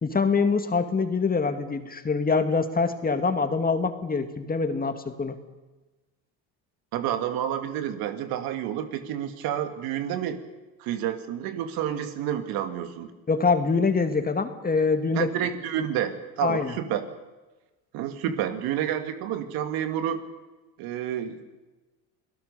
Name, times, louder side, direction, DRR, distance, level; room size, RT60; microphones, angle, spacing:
voice 1, 0.0-5.4 13.3-15.3 16.4-16.8, left 4 dB, 25° left, 8 dB, 2.1 m, -24 dB
voice 2, 6.9-10.4 10.8-13.1 15.2-17.0 17.9-20.2 20.8-21.6, right 10 dB, 75° right, 8 dB, 2.2 m, -29 dB
28.5 x 17.5 x 6.9 m, 1.2 s
supercardioid pair, 85°, 37 cm